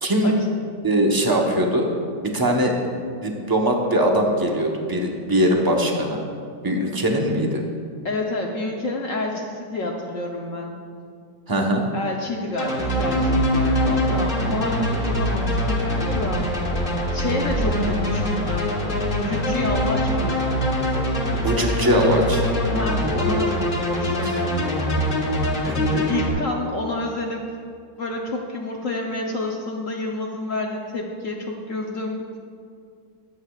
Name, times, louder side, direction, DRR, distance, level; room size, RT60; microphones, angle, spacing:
voice 1, 0.0-0.3 0.8-1.9 2.2-6.2 6.6-7.6 11.5-11.8 21.4-22.4 24.2-24.4 25.6-25.8, equal, 20° right, 0 dB, 0.7 m, -21 dB
voice 2, 8.0-10.8 11.9-16.7 17.1-18.8 19.2-20.5 22.7-24.5 25.7-27.4 28.0-32.2, left 2 dB, 55° left, 0 dB, 1.0 m, -29 dB
sound 1, 12.6-26.3, equal, 30° left, 1.7 m, -23 dB
22.0 x 8.3 x 2.4 m, 2.2 s
omnidirectional pair, 2.0 m